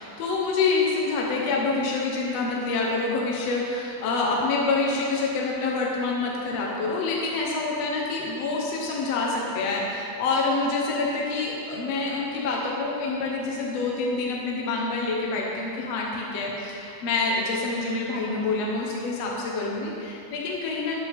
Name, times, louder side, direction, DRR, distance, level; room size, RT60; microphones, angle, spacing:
voice 1, 0.0-21.0, left 3 dB, 65° left, -2 dB, 1.7 m, -27 dB
12.5 x 11.5 x 3.6 m, 2.7 s
omnidirectional pair, 4.4 m